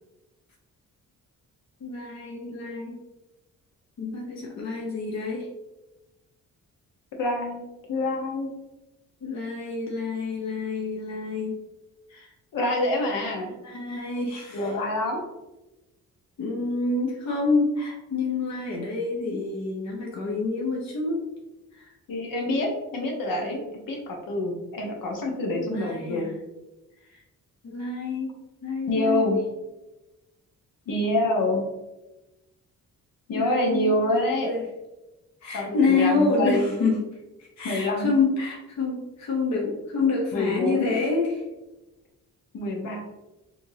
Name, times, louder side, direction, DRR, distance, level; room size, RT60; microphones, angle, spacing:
voice 1, 1.8-3.0 4.0-5.5 9.2-11.6 12.1-12.3 13.6-14.7 16.4-21.2 21.8-21.9 25.5-26.3 27.1-27.2 27.6-28.3 28.6-29.2 33.3-34.6 35.4-37.0 37.6-41.4, left 3 dB, 50° left, -1 dB, 0.7 m, -27 dB
voice 2, 7.2-7.6 7.9-8.5 12.5-13.5 14.5-15.2 22.1-23.6 23.9-26.3 28.9-29.4 30.9-31.6 33.3-34.5 35.5-36.7 37.6-38.2 40.3-41.0 42.5-43.0, left 1 dB, 70° left, 1 dB, 1.0 m, -26 dB
4.4 x 2.7 x 2.7 m, 1.0 s
wide cardioid pair, 130°, 34 cm